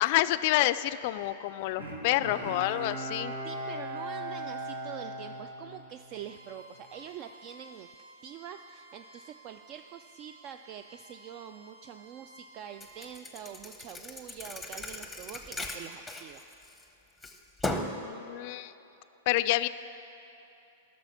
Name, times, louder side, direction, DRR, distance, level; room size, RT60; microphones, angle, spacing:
voice 1, 0.0-3.3 17.9-18.7 19.3-19.7, left 15 dB, 55° left, 15 dB, 0.3 m, -28 dB
Bowed string instrument, 1.8-6.3 6.7-6.8, right 1 dB, 80° right, 1.7 m, -38 dB
voice 2, 3.4-7.9 8.2-16.5, right 9 dB, 40° right, 8 dB, 0.3 m, -45 dB
Bowed string instrument 2, 6.1-13.1, right 1 dB, 65° right, 1.3 m, -55 dB
Thump thud, 12.8-16.8 17.2-18.0, left 1 dB, 5° left, 0.8 m, -37 dB
11.5 x 6.2 x 5.8 m, 2.9 s
hypercardioid pair, 115°, 0 cm